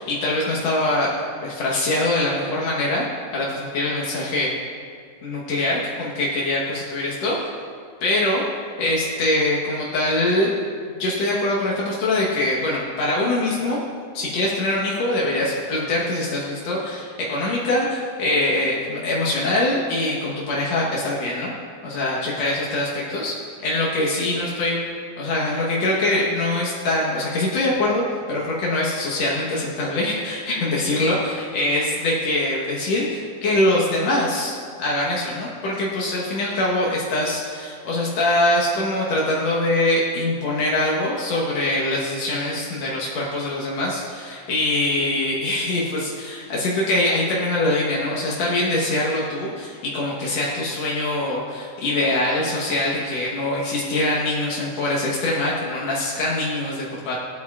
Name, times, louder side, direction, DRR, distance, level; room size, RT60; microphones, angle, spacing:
voice 1, 0.0-3.0 3.3-4.5 5.2-7.4 8.0-8.4 8.8-10.5 11.0-13.8 14.1-21.5 21.8-24.8 25.2-28.0 28.3-57.2, left 1 dB, 75° left, -4 dB, 1.5 m, -23 dB
17.0 x 9.6 x 2.4 m, 2.1 s
omnidirectional pair, 4.6 m